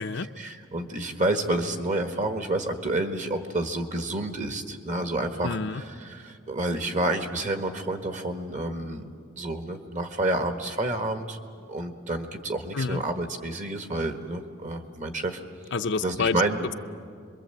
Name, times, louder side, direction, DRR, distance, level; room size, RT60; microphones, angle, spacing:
voice 1, 0.4-5.6 6.1-9.1 9.4-11.4 11.7-15.4 16.0-16.7, right 2 dB, 40° right, 6 dB, 1.5 m, -29 dB
voice 2, 5.4-5.8 12.7-13.0 15.7-16.4, left 4 dB, 60° left, 8 dB, 0.7 m, -28 dB
26.0 x 23.0 x 7.9 m, 2.2 s
head